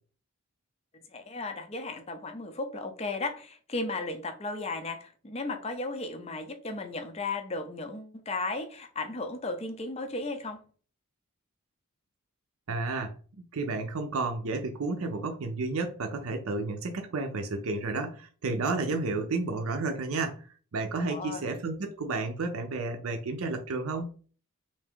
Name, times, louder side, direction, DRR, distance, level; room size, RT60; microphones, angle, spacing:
voice 1, 1.1-10.6 21.0-21.5, left 3 dB, 30° left, 0.5 m, -35 dB
voice 2, 12.7-20.5 20.7-24.1, right 3 dB, 70° right, 0.5 m, -32 dB
3.4 x 2.7 x 3.6 m
head